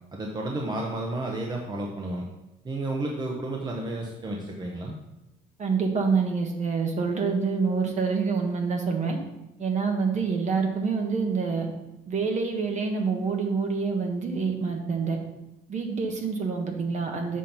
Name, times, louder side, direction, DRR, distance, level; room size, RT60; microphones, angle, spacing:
voice 1, 0.1-2.2 2.6-5.0, right 2 dB, 25° right, 0 dB, 1.0 m, -31 dB
voice 2, 5.6-9.2 9.6-11.7 12.1-15.2 15.7-17.4, right 5 dB, 45° right, 3 dB, 1.4 m, -26 dB
7.3 x 4.4 x 5.5 m, 0.94 s
cardioid pair, 110°, 17 cm